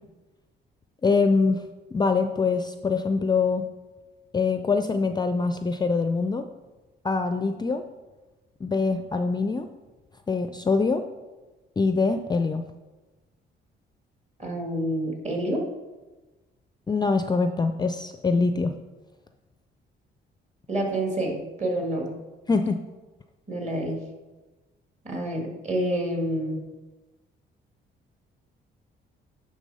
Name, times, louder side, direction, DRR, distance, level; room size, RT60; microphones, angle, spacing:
voice 1, 1.0-1.6 1.9-3.7 4.3-6.4 7.0-7.8 8.6-9.7 10.3-11.0 11.8-12.7 16.9-18.7 22.5-22.8, left 4 dB, 20° left, 7 dB, 0.4 m, -24 dB
voice 2, 14.4-15.6 20.7-22.2 23.5-24.0 25.0-26.6, right 1 dB, 35° right, 1 dB, 2.0 m, -28 dB
9.7 x 3.5 x 5.4 m, 1.2 s
cardioid pair, 90°, 20 cm